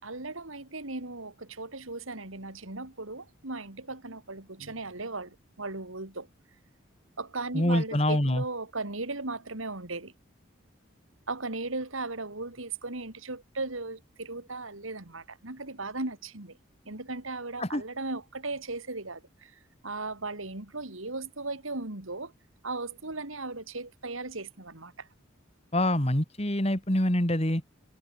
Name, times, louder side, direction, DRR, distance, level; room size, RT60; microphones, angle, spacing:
voice 1, 0.0-6.3 7.2-10.1 11.3-16.6 16.9-19.5 19.8-22.3 22.6-25.1, right 3 dB, 85° right, 3.5 m, -37 dB
voice 2, 7.5-8.4 17.6-17.8 25.7-27.6, left 1 dB, 30° left, 3.1 m, -25 dB
head